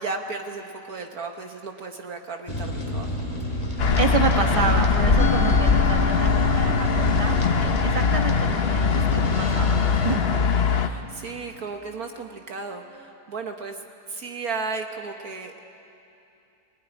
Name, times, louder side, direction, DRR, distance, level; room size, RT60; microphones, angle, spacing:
voice 1, 0.0-3.1 10.8-15.6, right 4 dB, 60° right, 4 dB, 1.6 m, -34 dB
sound 1, 2.5-10.2, equal, 20° left, 2.1 m, -30 dB
voice 2, 3.7-10.2, right 4 dB, 20° right, 4 dB, 1.5 m, -29 dB
sound 2, 3.8-10.9, left 5 dB, 45° left, 0.9 m, -21 dB
Musical instrument, 5.2-11.6, left 1 dB, 75° left, 2.9 m, -33 dB
22.0 x 20.5 x 10.0 m, 2.7 s
omnidirectional pair, 1.9 m